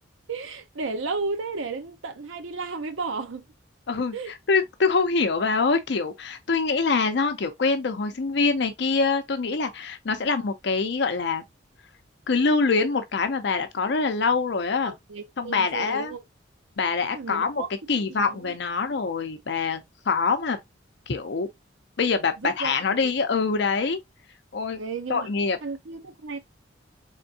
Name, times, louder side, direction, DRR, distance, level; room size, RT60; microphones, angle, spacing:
voice 1, 0.3-3.4 4.1-4.3 14.8-16.2 17.1-18.5 22.4-23.1 24.7-25.3 25.6-26.4, right 4 dB, 85° right, 0.7 m, -33 dB
voice 2, 4.5-11.4 12.3-14.9 15.4-16.1 16.8-17.6 17.9-20.6 21.1-21.5 22.0-24.0 24.5-24.8 25.1-25.6, left 4 dB, 60° left, 0.6 m, -24 dB
3.6 x 3.4 x 2.7 m
head